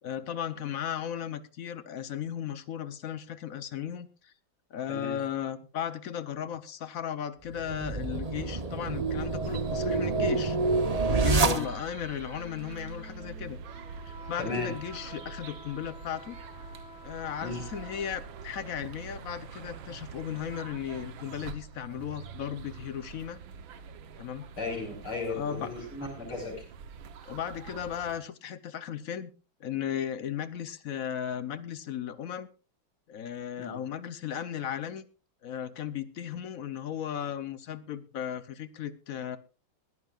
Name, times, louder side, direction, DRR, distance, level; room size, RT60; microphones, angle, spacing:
voice 1, 0.0-4.3 4.7-10.6 11.1-13.6 14.1-16.4 17.0-23.4 24.2-24.5 25.3-25.7 27.2-29.3 29.6-32.5 33.1-35.0 35.4-39.4, left 9 dB, 55° left, 13 dB, 1.0 m, -36 dB
voice 2, 4.9-5.2 11.3-11.6 14.4-14.7 17.4-17.6 24.6-26.7 33.6-33.8, left 3 dB, 90° left, 1 dB, 6.2 m, -35 dB
sound 1, 7.5-12.1, right 3 dB, 40° right, 0.5 m, -28 dB
sound 2, 9.4-28.2, right 5 dB, 70° right, 1.8 m, -44 dB
Wind instrument woodwind instrument, 12.3-18.5, equal, 5° right, 1.2 m, -50 dB
20.5 x 14.5 x 2.5 m, 0.33 s
omnidirectional pair, 2.3 m